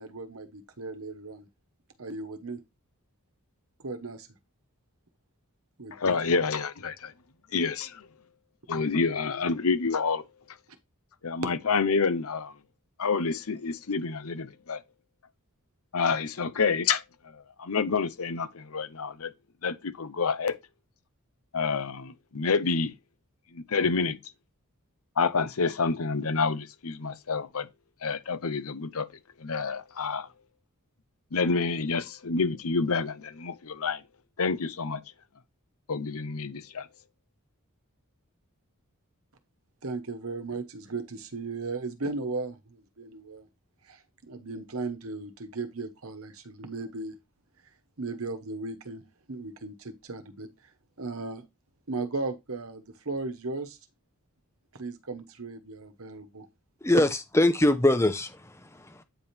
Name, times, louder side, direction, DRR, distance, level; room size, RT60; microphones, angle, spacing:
voice 1, 0.0-1.5 2.0-2.6 3.8-4.3 5.8-6.2 39.8-43.5 43.9-47.2 48.0-49.0 49.3-50.5 51.0-51.4 51.9-53.8 54.7-56.5, right 3 dB, 70° right, 1.2 m, -36 dB
voice 2, 5.9-7.1 7.5-8.1 8.7-10.2 11.2-12.5 13.0-14.8 15.9-17.0 17.6-19.3 19.6-20.6 21.5-22.9 23.5-24.2 25.2-27.7 28.0-29.1 29.4-30.3 31.3-34.0 34.4-35.0 35.9-36.9, left 4 dB, 75° left, 0.8 m, -28 dB
voice 3, 57.3-59.0, left 1 dB, 10° left, 0.7 m, -23 dB
8.9 x 3.5 x 4.3 m
head